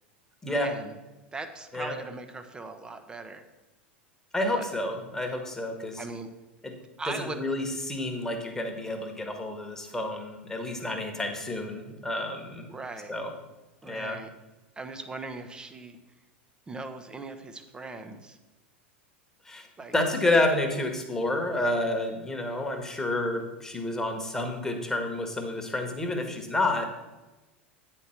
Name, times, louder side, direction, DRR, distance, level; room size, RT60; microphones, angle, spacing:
voice 1, 0.4-0.9 1.3-3.4 4.5-4.7 6.0-6.3 7.0-7.4 12.7-13.1 13.8-14.3 14.7-16.0 16.7-18.4 19.8-19.9, right 3 dB, 15° right, 8 dB, 0.8 m, -39 dB
voice 2, 4.3-6.0 6.6-6.7 7.2-12.6 13.1-13.3 13.9-14.2 19.4-19.7 19.9-26.8, left 1 dB, 10° left, 3 dB, 1.4 m, -29 dB
9.2 x 4.5 x 5.7 m, 1.1 s
figure-of-eight pair, 85°, 6 cm